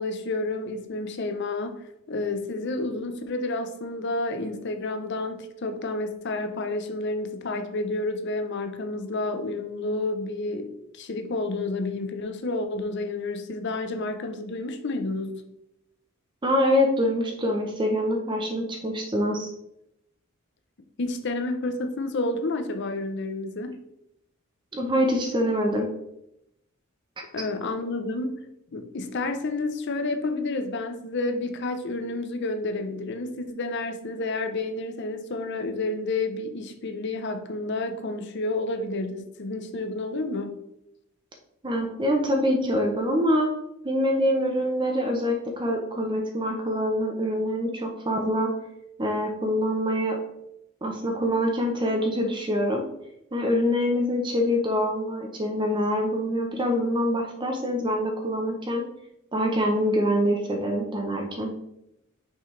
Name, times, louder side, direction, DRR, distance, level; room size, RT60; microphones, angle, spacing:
voice 1, 0.0-15.3 21.0-23.8 27.3-28.4 28.7-40.6, left 2 dB, 55° left, 0.6 m, -30 dB
voice 2, 16.4-19.5 24.7-25.9 41.6-43.5 43.8-48.5 49.0-50.2 50.8-52.8 53.3-58.8 59.3-61.5, equal, 25° right, 0.7 m, -25 dB
6.0 x 5.1 x 3.2 m
head